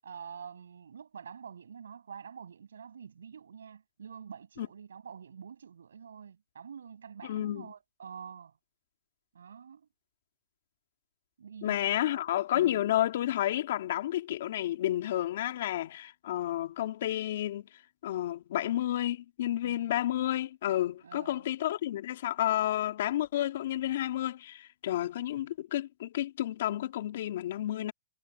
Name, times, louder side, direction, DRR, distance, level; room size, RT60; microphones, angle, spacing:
voice 1, 0.0-8.5 9.3-9.9 11.4-11.8 12.1-12.2 12.5-12.9 19.6-20.0 21.0-21.4, right 7 dB, 85° right, 7.6 m, -47 dB
voice 2, 7.2-7.7 11.6-17.7 18.0-27.9, left 13 dB, 60° left, 3.1 m, -31 dB
hypercardioid pair, 145°, 0 cm